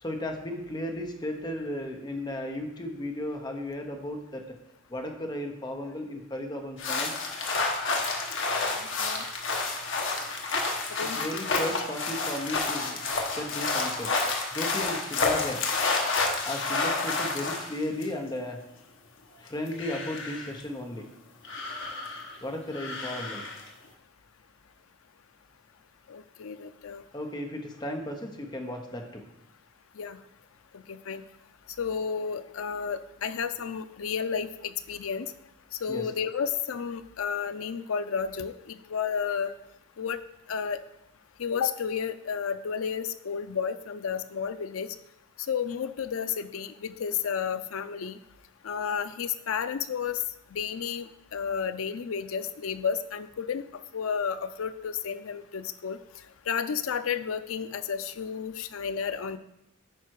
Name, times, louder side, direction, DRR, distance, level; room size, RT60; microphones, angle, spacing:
voice 1, 0.0-4.6 4.9-7.1 11.2-13.0 13.3-14.2 14.5-15.6 16.4-18.6 19.4-21.1 22.4-23.4 27.1-29.2 35.9-36.1, left 1 dB, 20° left, 3 dB, 1.0 m, -35 dB
sound 1, 6.8-18.0 19.5-20.5 21.4-22.4 22.7-23.7, left 3 dB, 65° left, 1.2 m, -30 dB
voice 2, 8.5-9.2 11.0-11.2 26.1-27.0 30.0-30.2 30.9-31.2 31.8-35.3 35.8-39.5 40.0-40.2 40.5-40.8 41.4-44.9 45.5-48.2 48.6-50.2 50.5-53.6 53.9-56.0 56.5-59.4, left 7 dB, 85° left, 11 dB, 0.5 m, -32 dB
9.1 x 5.0 x 4.7 m, 0.85 s
head